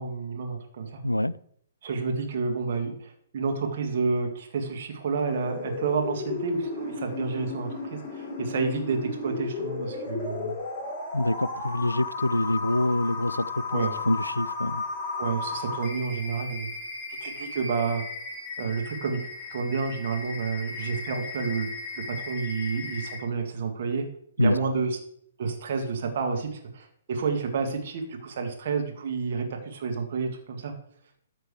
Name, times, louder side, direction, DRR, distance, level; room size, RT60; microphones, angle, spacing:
voice 1, 0.0-1.0 1.8-10.5 13.7-14.0 15.2-16.7 17.2-18.0 18.6-19.2 19.5-21.7 22.2-24.1 24.4-25.0 25.4-30.7, right 5 dB, 50° right, 2.0 m, -30 dB
voice 2, 1.0-1.3 11.1-14.8 24.4-24.6, left 1 dB, 90° left, 0.3 m, -26 dB
sound 1, 5.3-23.2, left 4 dB, 20° left, 4.1 m, -35 dB
13.5 x 4.5 x 4.8 m
figure-of-eight pair, 125°, 0 cm